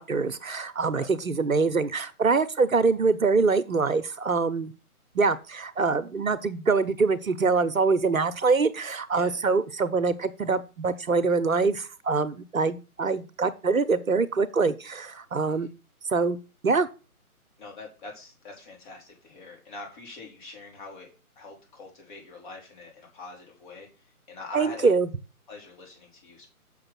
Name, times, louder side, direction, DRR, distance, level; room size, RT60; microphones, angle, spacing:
voice 1, 0.0-4.7 5.1-15.7 16.1-16.4 16.6-16.9 24.5-25.1, right 4 dB, 65° right, 13 dB, 1.0 m, -24 dB
voice 2, 15.4-15.7 17.6-21.1 21.4-25.0 25.5-26.5, left 3 dB, 30° left, 0 dB, 4.0 m, -44 dB
7.0 x 6.5 x 5.9 m, 0.33 s
figure-of-eight pair, 150°, 44 cm